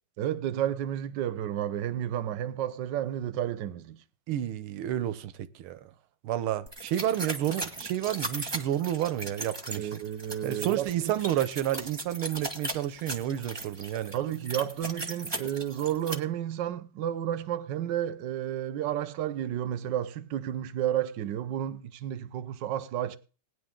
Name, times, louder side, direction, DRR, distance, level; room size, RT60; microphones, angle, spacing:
voice 1, 0.2-4.0 9.8-11.1 14.1-23.2, right 11 dB, 65° right, 1.4 m, -31 dB
voice 2, 4.3-5.8 6.2-10.0 10.4-14.1, right 12 dB, 80° right, 1.6 m, -30 dB
sound 1, 6.7-16.1, right 2 dB, 15° right, 1.2 m, -38 dB
18.5 x 10.5 x 3.7 m
omnidirectional pair, 2.3 m